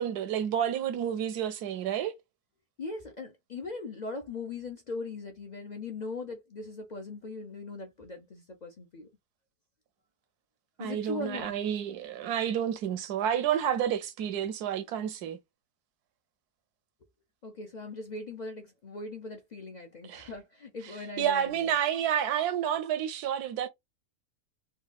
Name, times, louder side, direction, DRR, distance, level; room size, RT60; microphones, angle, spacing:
voice 1, 0.0-2.1 10.8-15.4 20.0-20.3 21.2-23.7, right 9 dB, 85° right, 1.2 m, -30 dB
voice 2, 2.8-9.1 10.8-11.5 17.4-21.7, left 3 dB, 55° left, 0.5 m, -40 dB
3.9 x 2.3 x 2.3 m
omnidirectional pair, 1.6 m